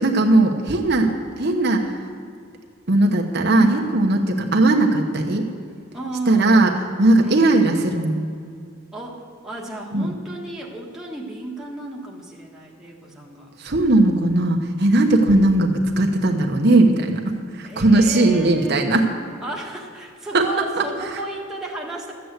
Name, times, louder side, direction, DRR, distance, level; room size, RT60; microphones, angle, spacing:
voice 1, 0.0-2.0 2.9-5.5 6.3-6.7 7.0-8.2 9.9-10.1 13.6-19.1 20.3-20.5 20.8-20.9 21.1-21.2, right 2 dB, 55° right, 2 dB, 1.1 m, -18 dB
voice 2, 3.5-4.0 5.9-6.8 7.2-7.5 8.9-13.5 17.6-18.9 19.4-22.1, right 2 dB, 5° right, -3 dB, 1.6 m, -33 dB
13.0 x 8.2 x 8.1 m, 2.3 s
head